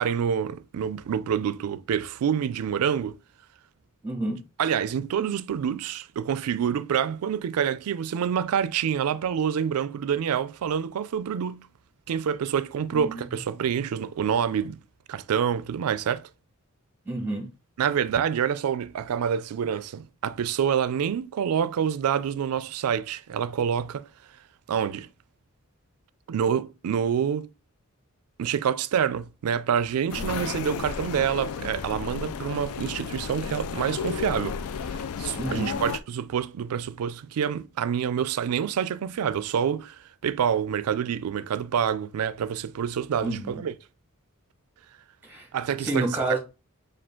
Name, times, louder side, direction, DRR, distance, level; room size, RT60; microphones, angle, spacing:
voice 1, 0.0-3.2 4.6-11.7 12.1-14.8 15.1-16.3 17.8-24.1 24.7-25.1 26.3-27.5 28.4-34.6 34.9-43.7 45.5-46.4, right 8 dB, 80° right, 0.4 m, -27 dB
voice 2, 4.0-4.4 12.9-13.3 17.0-17.5 30.2-30.5 35.4-35.8 43.2-43.6 45.2-45.5 45.8-46.4, right 2 dB, 10° right, 1.5 m, -30 dB
sound 1, 30.1-36.0, left 6 dB, 80° left, 0.4 m, -33 dB
4.9 x 2.3 x 3.6 m
head